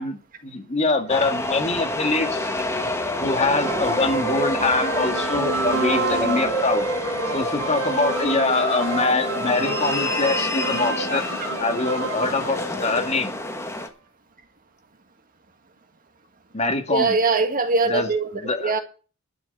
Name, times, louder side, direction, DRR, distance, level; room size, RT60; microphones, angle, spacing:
voice 1, 0.0-2.5 3.2-6.9 7.3-11.3 11.6-13.3 16.5-17.2 17.9-18.8, left 3 dB, 35° left, 1.8 m, -24 dB
sound 1, 1.1-13.9, left 1 dB, 15° left, 1.6 m, -28 dB
sound 2, 2.0-13.7, right 4 dB, 80° right, 2.3 m, -31 dB
sound 3, 6.0-13.1, left 4 dB, 80° left, 1.5 m, -35 dB
voice 2, 16.9-18.8, right 4 dB, 45° right, 1.9 m, -22 dB
12.0 x 6.1 x 8.2 m
head